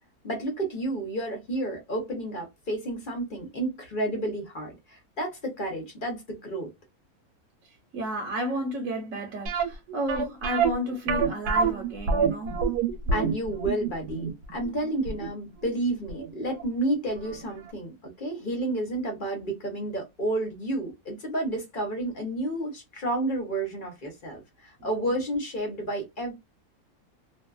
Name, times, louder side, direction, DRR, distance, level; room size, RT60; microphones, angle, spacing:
voice 1, 0.2-6.7 13.1-26.3, right 1 dB, 40° left, 0.9 m, -31 dB
voice 2, 7.9-12.6, equal, 65° right, 1.1 m, -32 dB
sound 1, 9.5-16.3 16.6-16.7 17.3-17.4 17.7-17.8, right 5 dB, 90° right, 1.1 m, -27 dB
2.6 x 2.3 x 2.2 m
omnidirectional pair, 1.6 m